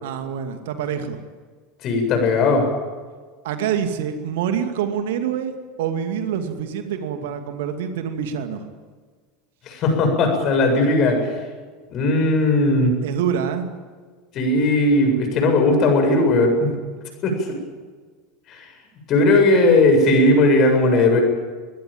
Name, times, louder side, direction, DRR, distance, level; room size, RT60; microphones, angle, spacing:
voice 1, 0.0-1.2 3.4-8.7 13.0-13.7, right 8 dB, 60° right, 7 dB, 2.4 m, -26 dB
voice 2, 1.8-2.6 9.7-11.3 11.9-13.0 14.3-16.7 17.2-17.3 18.5-18.7 19.1-21.2, left 2 dB, 40° left, 4 dB, 7.8 m, -17 dB
23.0 x 21.5 x 9.1 m, 1.5 s
figure-of-eight pair, 75°, 0 cm